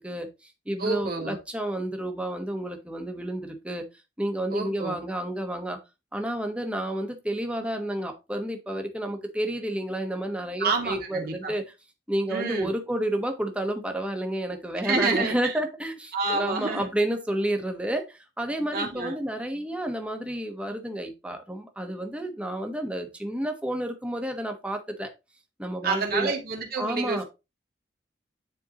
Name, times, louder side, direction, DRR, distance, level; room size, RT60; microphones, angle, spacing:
voice 1, 0.0-3.8 4.2-5.8 6.1-11.7 12.1-25.1 25.6-26.3 26.8-27.2, right 1 dB, 5° right, 1.2 m, -30 dB
voice 2, 0.8-1.4 4.5-5.0 10.6-11.6 12.3-12.7 14.8-15.5 16.1-16.9 18.7-19.2 25.8-27.3, right 4 dB, 55° right, 2.2 m, -28 dB
9.9 x 4.5 x 2.9 m
head